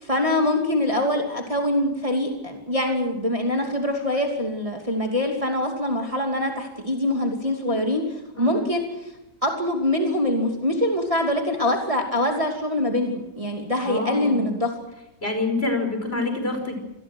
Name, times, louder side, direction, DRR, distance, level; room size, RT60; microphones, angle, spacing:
voice 1, 0.0-8.0 8.4-8.9 9.4-14.7, left 1 dB, 20° right, 2 dB, 2.8 m, -24 dB
voice 2, 8.3-8.7 13.8-14.5 15.2-16.8, left 2 dB, 35° left, 5 dB, 5.7 m, -27 dB
27.0 x 20.5 x 6.4 m, 0.91 s
omnidirectional pair, 1.9 m